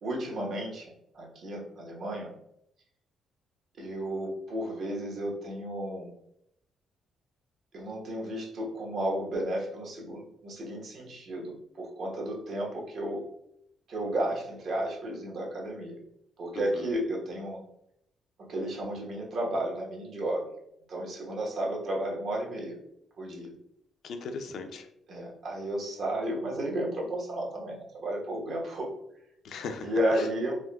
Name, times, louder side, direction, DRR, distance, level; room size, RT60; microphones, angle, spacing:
voice 1, 0.0-2.3 3.8-6.1 7.7-13.2 13.9-16.0 16.4-17.6 18.5-20.5 20.9-22.7 23.2-23.5 25.1-28.9 29.8-30.6, right 1 dB, 60° right, -2 dB, 1.0 m, -33 dB
voice 2, 16.5-16.9 24.0-24.9 29.4-30.3, left 4 dB, 70° left, 7 dB, 0.4 m, -39 dB
3.5 x 2.5 x 2.2 m, 0.76 s
cardioid pair, 90°, 0 cm